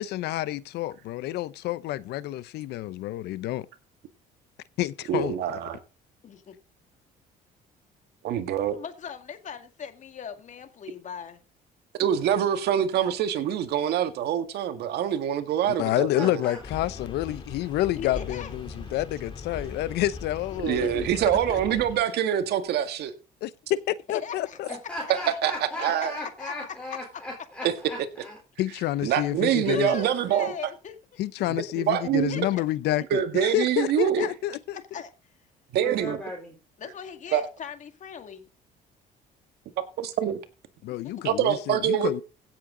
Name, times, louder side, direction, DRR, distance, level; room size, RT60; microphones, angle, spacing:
voice 1, 0.0-3.7 4.8-5.4 15.7-21.6 23.4-24.7 28.6-30.0 31.2-34.8 40.8-42.2, left 14 dB, 80° left, 0.8 m, -29 dB
voice 2, 5.1-5.8 8.2-8.8 12.0-16.4 20.6-23.1 25.4-25.5 25.8-26.1 27.6-27.7 29.0-30.5 31.8-32.5 33.1-34.3 35.7-36.2 37.3-37.4 40.0-40.4 41.2-42.1, right 9 dB, 75° right, 1.9 m, -25 dB
voice 3, 6.2-6.5 8.7-11.4 18.0-18.5 20.8-20.9 24.1-25.1 26.0-27.2 29.7-30.9 32.3-32.6 34.2-34.3 34.9-35.1 36.8-38.5 41.0-41.1, left 7 dB, 45° left, 2.2 m, -39 dB
voice 4, 16.1-16.6 24.7-28.4 35.8-36.6, left 1 dB, 5° left, 3.7 m, -37 dB
sound 1, 16.6-22.0, left 3 dB, 30° left, 2.9 m, -39 dB
16.0 x 7.6 x 3.9 m
cardioid pair, 110°, 17 cm